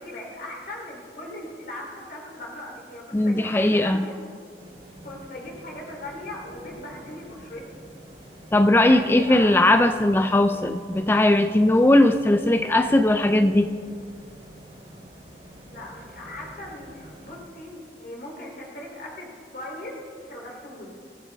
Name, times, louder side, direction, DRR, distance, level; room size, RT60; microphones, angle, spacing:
voice 1, 0.0-4.1 5.0-7.8 8.7-10.0 15.6-20.9, left 1 dB, 50° left, -2 dB, 3.2 m, -39 dB
voice 2, 3.1-4.0 8.5-13.7, left 1 dB, 10° left, 9 dB, 0.4 m, -19 dB
sound 1, 4.5-17.3, equal, 35° right, 5.4 m, -47 dB
24.5 x 15.5 x 3.5 m, 2.2 s
head